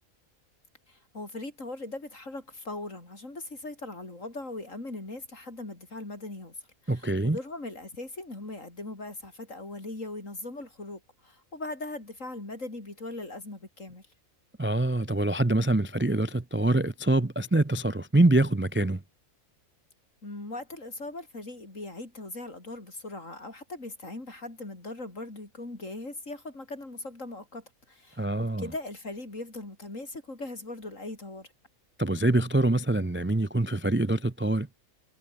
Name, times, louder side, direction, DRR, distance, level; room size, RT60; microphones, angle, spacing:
voice 1, 0.9-6.5 6.8-14.0 20.2-31.5, left 2 dB, 65° left, 5.9 m, -40 dB
voice 2, 6.9-7.4 14.6-19.0 28.2-28.7 32.0-34.7, right 2 dB, 15° right, 0.4 m, -25 dB
omnidirectional pair, 1.4 m